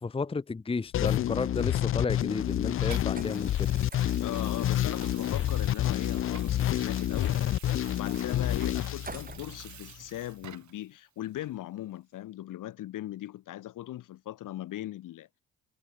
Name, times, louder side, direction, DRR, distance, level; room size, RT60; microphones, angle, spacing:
voice 1, 0.0-3.7, left 4 dB, 15° left, 0.7 m, -32 dB
sound 1, 0.9-9.8, left 12 dB, 45° left, 0.4 m, -28 dB
Water tap faucet / Sink (filling or washing), 1.6-10.9 11.4-11.5, right 9 dB, 60° right, 3.9 m, -49 dB
sound 2, 2.6-10.4, right 3 dB, 25° right, 6.0 m, -51 dB
voice 2, 4.2-7.4 7.9-15.3, left 14 dB, 75° left, 2.8 m, -39 dB
supercardioid pair, 50°, 32 cm